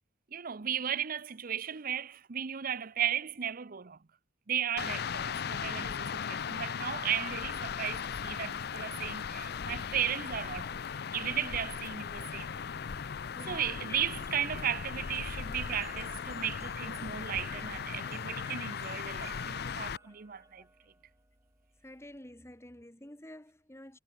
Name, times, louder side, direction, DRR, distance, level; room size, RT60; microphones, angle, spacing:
voice 1, 0.3-4.0 4.5-12.6 13.5-20.6, right 9 dB, 50° right, 0.7 m, -35 dB
sound 1, 4.8-20.0, left 6 dB, 60° left, 0.6 m, -38 dB
voice 2, 13.3-14.0 14.6-14.7 17.4-17.7 20.0-20.2 21.8-24.0, left 1 dB, 15° left, 2.5 m, -50 dB
sound 2, 15.0-22.2, right 2 dB, 15° right, 6.2 m, -56 dB
head